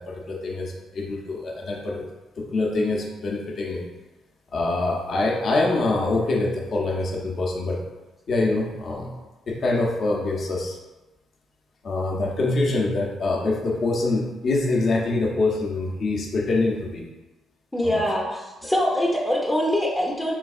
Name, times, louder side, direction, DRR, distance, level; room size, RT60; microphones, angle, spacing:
voice 1, 0.0-2.1 2.4-3.8 4.5-7.8 8.3-9.1 9.5-10.8 11.8-17.0 17.8-18.0 18.6-18.7, left 2 dB, 55° left, -1 dB, 0.6 m, -25 dB
voice 2, 17.7-20.4, equal, 15° left, -3 dB, 0.5 m, -23 dB
3.9 x 3.4 x 2.4 m, 1.1 s
cardioid pair, 90°, 0 cm